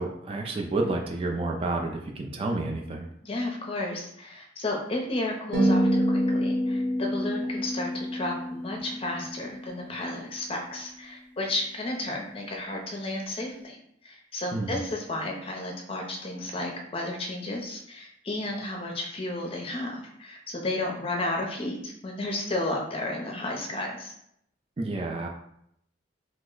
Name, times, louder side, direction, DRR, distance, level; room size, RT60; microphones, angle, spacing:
voice 1, 0.0-3.1 14.5-14.8 24.8-25.3, right 2 dB, 30° right, 2 dB, 0.3 m, -30 dB
voice 2, 3.2-13.8 14.0-24.1, left 2 dB, 30° left, 1 dB, 0.5 m, -33 dB
sound 1, 5.5-9.8, equal, 70° right, 1.1 m, -27 dB
3.0 x 2.1 x 3.7 m, 0.74 s
head